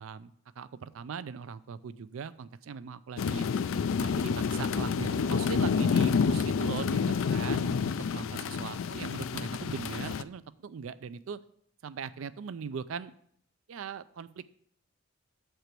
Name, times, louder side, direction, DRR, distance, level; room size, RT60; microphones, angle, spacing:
voice 1, 0.0-3.5 4.0-7.0 7.3-11.4 11.8-13.1 13.7-14.5, right 6 dB, 75° right, 15 dB, 0.4 m, -40 dB
sound 1, 3.2-10.2, left 5 dB, 70° left, 0.4 m, -29 dB
6.8 x 4.5 x 6.7 m, 0.64 s
head